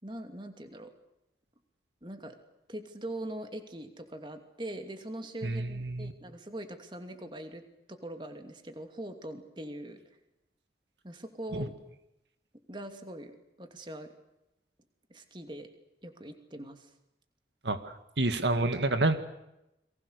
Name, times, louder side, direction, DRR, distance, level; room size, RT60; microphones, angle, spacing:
voice 1, 0.0-0.9 2.0-2.4 2.7-7.6 7.9-10.0 11.0-11.7 12.7-13.3 13.6-14.1 15.1-15.7 16.0-16.9, right 1 dB, 25° right, 6 dB, 2.7 m, -42 dB
voice 2, 5.4-6.1 11.5-11.7 17.6-19.2, right 2 dB, 80° right, 9 dB, 2.0 m, -29 dB
30.0 x 23.5 x 6.8 m, 0.88 s
head